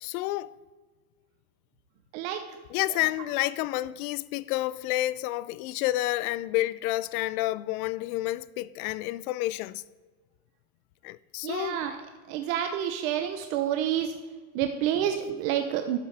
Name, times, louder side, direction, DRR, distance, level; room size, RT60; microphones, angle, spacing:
voice 1, 0.0-0.6 2.7-9.8 11.0-11.8, left 16 dB, 75° left, 0.5 m, -29 dB
voice 2, 11.4-12.0 12.3-14.1 14.5-16.0, right 10 dB, 65° right, 0.9 m, -28 dB
12.5 x 8.4 x 3.4 m
cardioid pair, 160°, 44 cm